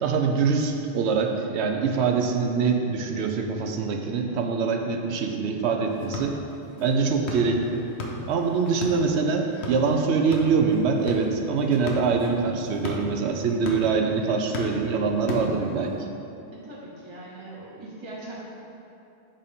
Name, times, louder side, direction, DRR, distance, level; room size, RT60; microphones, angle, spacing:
voice 1, 0.0-6.4 6.8-7.9 8.3-16.0, right 5 dB, 80° right, 3 dB, 0.9 m, -24 dB
sound 1, 5.9-16.0, left 2 dB, 75° left, 1.0 m, -37 dB
voice 2, 16.5-18.3, right 2 dB, 30° right, -5 dB, 0.7 m, -41 dB
7.5 x 2.7 x 5.1 m, 2.8 s
omnidirectional pair, 1.1 m